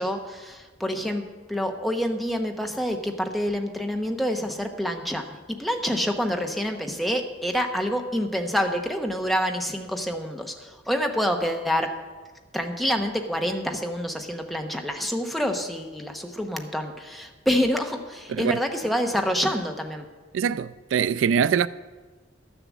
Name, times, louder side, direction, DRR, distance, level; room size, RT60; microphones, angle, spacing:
voice 1, 0.0-12.0 12.5-20.1, equal, ahead, 0.9 m, -27 dB
voice 2, 20.3-21.7, right 7 dB, 90° right, 0.3 m, -23 dB
12.0 x 7.1 x 7.3 m
head